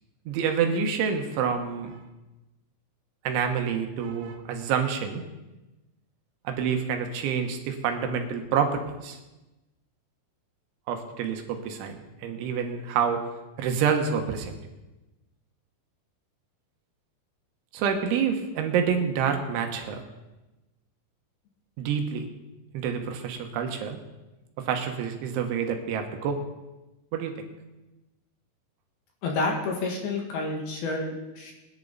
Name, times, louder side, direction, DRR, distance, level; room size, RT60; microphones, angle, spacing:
voice 1, 0.3-2.0 3.3-5.2 6.5-9.2 10.9-13.3 13.6-14.5 17.7-20.0 21.8-22.3 22.7-24.0 24.6-26.4 27.1-27.3, right 7 dB, 75° right, 5 dB, 3.5 m, -27 dB
voice 2, 29.2-31.5, left 3 dB, 60° left, 0 dB, 3.2 m, -29 dB
21.0 x 10.5 x 4.0 m, 1.0 s
omnidirectional pair, 5.6 m